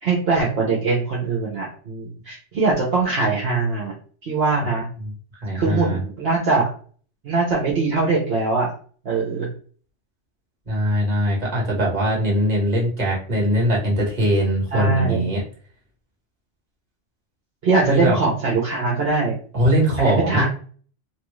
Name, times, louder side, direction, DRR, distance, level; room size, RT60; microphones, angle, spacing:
voice 1, 0.0-3.9 4.2-4.9 5.5-6.7 7.2-8.7 9.0-9.5 14.7-15.3 17.6-19.3 20.0-20.5, right 3 dB, 55° right, -4 dB, 1.0 m, -22 dB
voice 2, 5.4-6.0 10.7-15.4 17.8-18.2 19.5-20.5, equal, 35° right, -2 dB, 1.3 m, -21 dB
3.1 x 2.5 x 3.1 m, 0.44 s
omnidirectional pair, 1.3 m